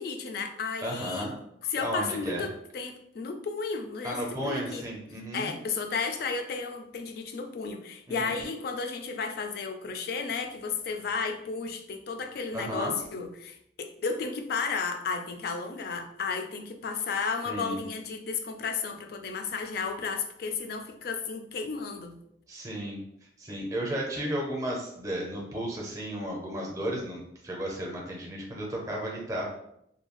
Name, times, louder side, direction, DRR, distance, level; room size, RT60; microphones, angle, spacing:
voice 1, 0.0-1.3 1.7-4.9 5.3-22.2, left 5 dB, 55° left, 6 dB, 0.3 m, -33 dB
voice 2, 0.8-1.3 1.8-2.4 4.0-5.5 8.1-8.4 12.5-12.9 17.5-17.8 22.5-23.0 23.4-29.5, right 1 dB, 20° right, -2 dB, 0.5 m, -34 dB
2.7 x 2.2 x 2.9 m, 0.75 s
head